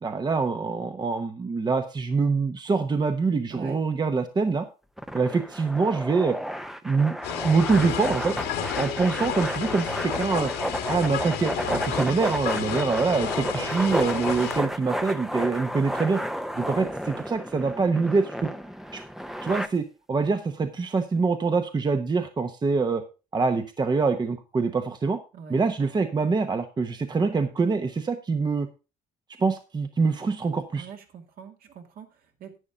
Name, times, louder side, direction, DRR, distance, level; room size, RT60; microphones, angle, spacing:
voice 1, 0.0-4.7 5.1-6.4 6.8-7.2 7.4-8.4 8.7-10.5 10.9-16.2 16.5-18.5 18.9-19.0 19.4-23.0 23.3-25.2 25.5-28.7 29.4-30.9, right 4 dB, 25° right, 8 dB, 1.0 m, -25 dB
voice 2, 3.5-3.8 12.0-12.2 25.3-25.6 30.7-32.6, right 6 dB, 60° right, 4 dB, 2.3 m, -44 dB
sound 1, 5.0-19.7, equal, ahead, 0.7 m, -32 dB
sound 2, 7.2-14.6, left 9 dB, 85° left, 2.2 m, -31 dB
11.0 x 8.8 x 3.6 m, 0.30 s
cardioid pair, 110°, 17 cm